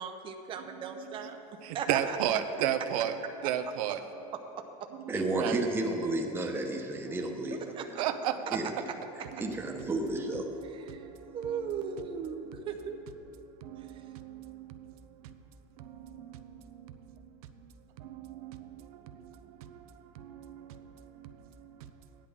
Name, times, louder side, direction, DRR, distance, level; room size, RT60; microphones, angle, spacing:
voice 1, 0.0-1.4 1.7-2.2 4.6-4.7 7.7-8.0 10.8-11.0 11.3-13.0 13.8-14.0, right 7 dB, 30° right, 4 dB, 0.7 m, -37 dB
voice 2, 1.6-3.1 3.4-4.0 5.1-5.6 8.0-8.3 9.7-9.8 10.9-11.4 13.6-14.9 15.8-16.9 18.0-21.7, right 10 dB, 90° right, 7 dB, 0.8 m, -35 dB
voice 3, 5.1-7.7 8.5-8.7 9.4-10.5, right 2 dB, 10° right, 1 dB, 1.1 m, -32 dB
15.0 x 10.0 x 3.6 m, 3.0 s
supercardioid pair, 150°, 18 cm